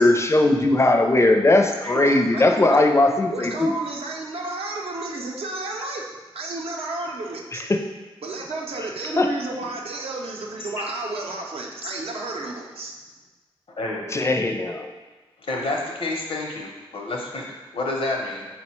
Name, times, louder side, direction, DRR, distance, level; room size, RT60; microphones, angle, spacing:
voice 1, 0.0-3.7 7.7-7.8 9.2-9.3 14.1-14.9, left 2 dB, 30° left, 4 dB, 0.4 m, -19 dB
voice 2, 1.8-2.8 3.3-6.1 6.3-7.6 8.2-12.9, right 2 dB, 80° right, -1 dB, 0.6 m, -31 dB
voice 3, 13.8-14.1 15.4-18.5, left 2 dB, 70° left, 0 dB, 0.7 m, -29 dB
4.1 x 2.1 x 4.3 m, 1.2 s
cardioid pair, 55°, 10 cm